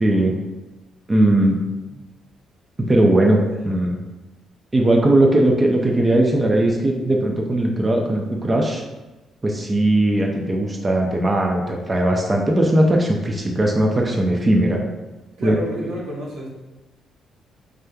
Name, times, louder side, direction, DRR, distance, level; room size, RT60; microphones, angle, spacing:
voice 1, 0.0-0.3 1.1-1.6 2.8-3.4 3.6-4.0 4.7-8.8 9.4-14.8 15.4-15.9, right 1 dB, 25° right, 0 dB, 0.5 m, -18 dB
voice 2, 15.4-16.5, equal, 85° right, -5 dB, 1.2 m, -31 dB
4.9 x 3.3 x 2.3 m, 1.1 s
cardioid pair, 90°, 0 cm